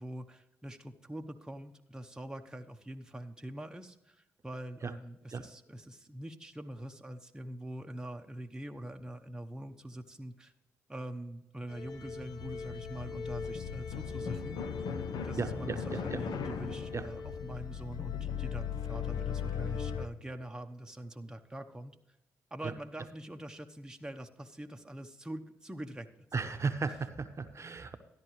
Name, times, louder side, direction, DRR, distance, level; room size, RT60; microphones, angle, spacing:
voice 1, 0.0-10.5 10.9-14.6 15.2-22.0 22.5-26.1, right 1 dB, 10° right, 5 dB, 0.9 m, -44 dB
sound 1, 11.7-20.1, left 7 dB, 70° left, 0.8 m, -37 dB
voice 2, 15.3-16.2 16.9-17.0 22.6-22.7 26.3-28.0, right 4 dB, 40° right, 8 dB, 0.9 m, -35 dB
13.0 x 10.5 x 3.1 m, 0.92 s
hypercardioid pair, 45°, 7 cm